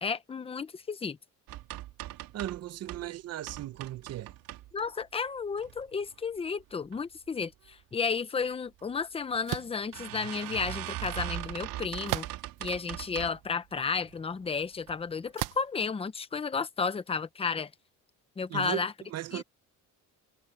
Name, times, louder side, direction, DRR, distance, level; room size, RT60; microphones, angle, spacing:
voice 1, 0.0-1.2 4.7-12.3 12.6-17.7 18.4-18.9 19.3-19.4, left 5 dB, 15° left, 0.9 m, -32 dB
sound 1, 1.5-3.1 3.4-5.0 5.5-6.1 6.6-7.0 7.3-7.4 7.7-7.8 8.8-8.9 9.3-9.4 9.9-13.5 13.9-14.4 14.8-15.0 15.3-15.4, right 14 dB, 80° right, 2.9 m, -40 dB
voice 2, 2.3-4.3 18.5-19.4, right 13 dB, 50° right, 0.8 m, -37 dB
sound 2, 9.5-9.8 12.1-12.6 13.3-13.4 15.4-15.8, right 15 dB, 65° right, 1.0 m, -34 dB
cardioid pair, 165°, 34 cm